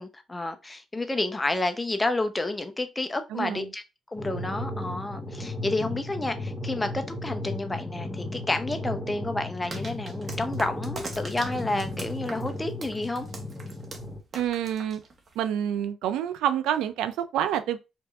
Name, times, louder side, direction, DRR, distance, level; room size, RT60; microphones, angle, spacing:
voice 1, 0.0-3.8 4.1-13.3, left 2 dB, 15° left, 0.6 m, -30 dB
voice 2, 3.3-3.7 14.3-15.0 15.4-17.8, right 10 dB, 90° right, 0.4 m, -27 dB
sound 1, 4.2-14.2, left 1 dB, ahead, 1.1 m, -35 dB
sound 2, 9.7-15.5, right 3 dB, 40° right, 1.0 m, -42 dB
4.5 x 2.6 x 2.4 m
cardioid pair, 85°, 0 cm